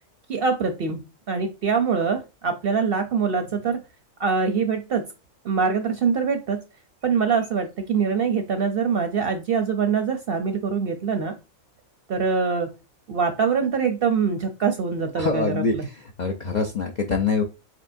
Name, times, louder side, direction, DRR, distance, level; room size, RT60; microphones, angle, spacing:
voice 1, 0.3-3.8 4.2-5.0 5.4-6.6 7.0-11.3 12.1-12.7 13.1-15.9, right 5 dB, 60° right, 5 dB, 0.6 m, -24 dB
voice 2, 15.2-15.7 16.2-17.4, left 4 dB, 60° left, 1 dB, 0.4 m, -24 dB
4.4 x 3.1 x 2.5 m, 0.28 s
omnidirectional pair, 1.4 m